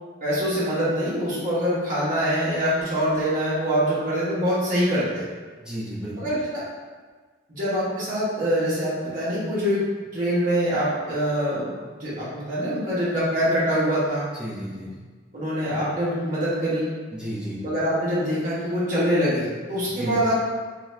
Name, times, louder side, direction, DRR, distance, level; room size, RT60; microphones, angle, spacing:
voice 1, 0.2-5.2 6.2-6.6 7.5-9.8 10.1-14.2 15.3-16.9 17.6-20.4, equal, 40° right, -9 dB, 1.0 m, -24 dB
voice 2, 5.6-6.2 14.4-15.0 17.1-17.6 19.9-20.1, right 1 dB, 5° right, -9 dB, 0.5 m, -33 dB
2.6 x 2.4 x 3.1 m, 1.4 s
head